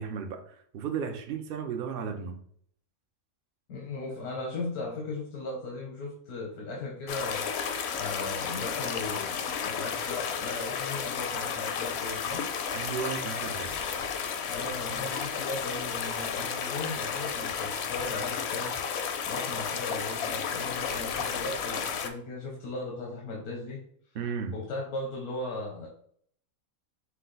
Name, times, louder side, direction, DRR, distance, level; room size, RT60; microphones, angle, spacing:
voice 1, 0.0-2.4 12.7-14.0 24.1-24.6, right 6 dB, 75° right, 0.5 m, -35 dB
voice 2, 3.7-7.5 7.9-12.5 14.5-18.7 19.3-23.8 24.5-25.9, left 2 dB, 85° left, 1.3 m, -37 dB
sound 1, 7.1-22.1, left 6 dB, 65° left, 0.7 m, -32 dB
5.6 x 2.3 x 3.8 m
omnidirectional pair, 1.5 m